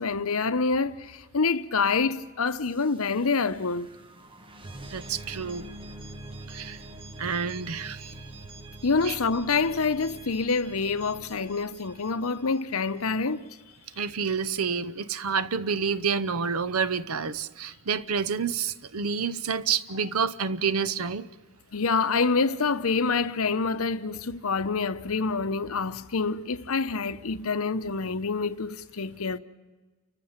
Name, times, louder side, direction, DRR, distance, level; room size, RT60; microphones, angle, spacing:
voice 1, 0.0-3.9 8.8-13.4 21.7-29.4, left 4 dB, 75° left, 0.8 m, -27 dB
sound 1, 2.5-13.3, right 2 dB, 25° right, 1.2 m, -45 dB
voice 2, 4.9-5.6 6.5-6.8 7.2-8.1 9.0-9.2 14.0-21.3, right 6 dB, 90° right, 0.8 m, -28 dB
29.0 x 15.0 x 8.8 m
head